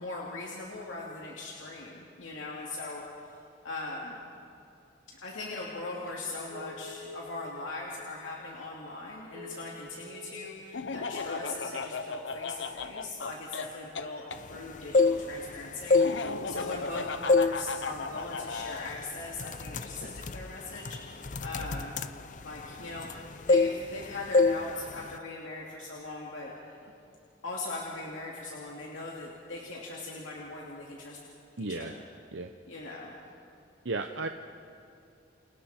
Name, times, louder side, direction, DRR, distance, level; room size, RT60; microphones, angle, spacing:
voice 1, 0.0-3.3 3.6-4.2 5.1-21.9 22.4-23.1 23.4-26.5 27.4-31.2 31.6-31.9 32.7-33.2, left 2 dB, 90° left, -3 dB, 2.8 m, -40 dB
Telephone, 6.5-7.6 8.1-8.2 8.6-8.7 9.2-10.3 11.5-12.1, left 1 dB, 45° right, 7.7 m, -47 dB
Laughter, 10.7-14.4 15.9-18.9, left 4 dB, 75° left, 0.9 m, -36 dB
sound 1, 14.7-15.5 15.8-16.9 17.3-17.6 18.0-18.2 18.9-19.0 19.3-23.2 23.5-24.0 24.3-24.6 24.9-25.2, left 3 dB, 40° left, 0.6 m, -25 dB
voice 2, 31.6-31.9 32.3-32.5 33.8-34.3, right 3 dB, 75° right, 5 dB, 0.9 m, -34 dB
30.0 x 28.5 x 4.5 m, 2.7 s
head